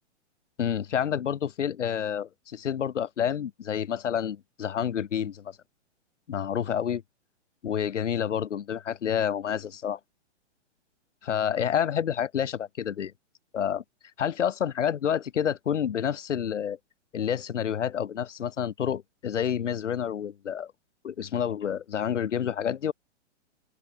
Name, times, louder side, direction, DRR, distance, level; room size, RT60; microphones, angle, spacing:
voice 1, 0.6-5.5 6.3-7.0 7.6-10.0 11.2-13.1 13.5-13.8 14.2-16.8 17.1-20.7 21.0-22.9, left 8 dB, 90° left, 1.1 m, -29 dB
open air
hypercardioid pair, 140°, 35 cm